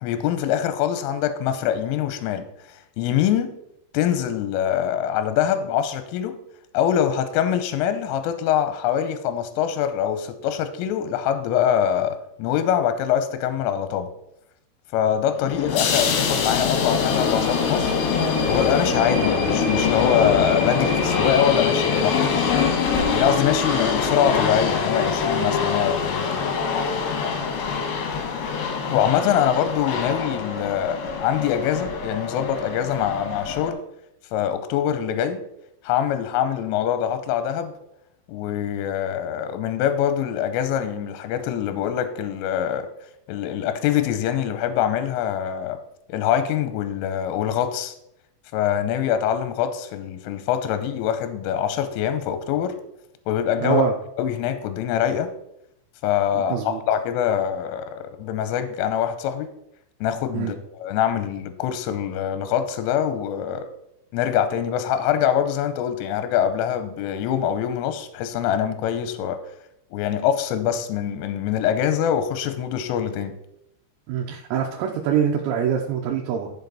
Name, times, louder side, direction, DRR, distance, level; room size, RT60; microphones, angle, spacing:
voice 1, 0.0-3.5 3.9-6.4 6.7-14.1 14.9-18.0 18.5-22.5 23.1-26.4 28.9-33.8 34.3-35.4 35.8-37.7 38.3-42.9 43.3-45.8 46.1-47.9 48.5-52.8 53.3-53.8 54.2-55.3 56.0-59.5 60.0-63.7 64.1-69.4 69.9-73.3, left 9 dB, 85° left, 10 dB, 3.2 m, -24 dB
sound 1, 15.4-33.7, left 5 dB, 70° left, 3.0 m, -24 dB
voice 2, 53.6-54.0 56.3-56.8 60.3-60.5 74.1-76.5, right 8 dB, 85° right, 0 dB, 3.5 m, -24 dB
10.5 x 7.3 x 4.0 m, 0.78 s
omnidirectional pair, 5.9 m